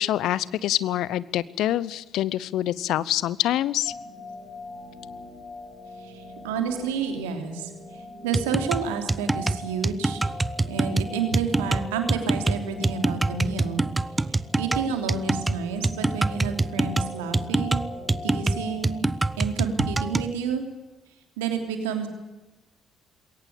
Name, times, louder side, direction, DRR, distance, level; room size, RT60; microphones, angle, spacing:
voice 1, 0.0-3.9, left 13 dB, 65° left, 20 dB, 0.8 m, -25 dB
sound 1, 3.8-19.0, left 2 dB, 45° left, 6.9 m, -42 dB
voice 2, 6.0-10.2 10.7-13.8 14.3-17.9 18.2-19.0 19.4-20.6 21.4-22.1, right 6 dB, 80° right, 6 dB, 3.2 m, -30 dB
sound 2, 8.3-20.3, right 2 dB, 20° right, 1.0 m, -25 dB
22.0 x 18.0 x 8.5 m, 1.0 s
hypercardioid pair, 45°, 0 cm